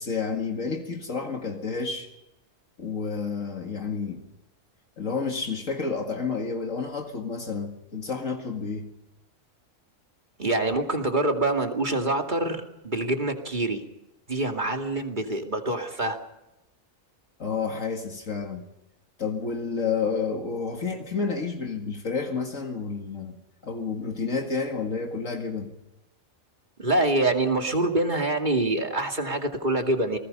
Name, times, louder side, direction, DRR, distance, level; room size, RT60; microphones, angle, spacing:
voice 1, 0.0-2.1 2.8-4.2 5.0-8.9 17.4-18.6 19.2-23.4 23.6-25.7, left 5 dB, 70° left, 3 dB, 2.4 m, -30 dB
voice 2, 10.4-13.8 14.3-16.2 26.8-30.2, right 2 dB, 35° right, 3 dB, 2.5 m, -25 dB
28.5 x 19.5 x 5.5 m, 0.91 s
omnidirectional pair, 1.4 m